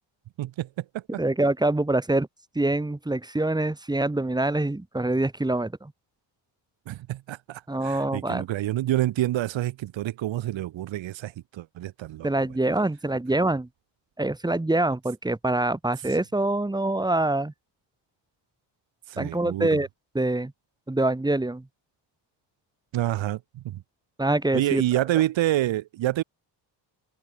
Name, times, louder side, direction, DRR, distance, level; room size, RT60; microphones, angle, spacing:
voice 1, 0.4-1.2 6.9-12.3 19.1-19.8 22.9-23.8 24.5-26.2, right 14 dB, 80° right, 2.8 m, -28 dB
voice 2, 1.2-2.3 2.5-5.9 7.7-8.5 12.2-13.7 14.2-17.5 19.2-19.9 20.1-20.5 20.9-21.6 24.2-24.8, right 2 dB, 10° right, 4.3 m, -25 dB
cardioid pair, 160°, 45 cm